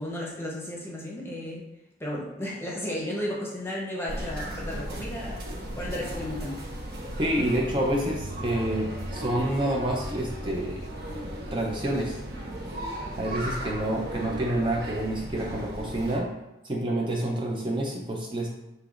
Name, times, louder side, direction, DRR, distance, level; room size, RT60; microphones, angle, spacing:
voice 1, 0.0-1.7 2.0-5.4 5.8-6.7, left 1 dB, 15° left, -3 dB, 0.8 m, -34 dB
sound 1, 4.1-16.2, right 1 dB, 55° right, 1.0 m, -36 dB
voice 2, 7.2-10.8 11.5-12.2 13.2-16.3 16.6-18.5, right 1 dB, 25° right, -1 dB, 0.5 m, -28 dB
6.6 x 3.0 x 2.4 m, 1.0 s
head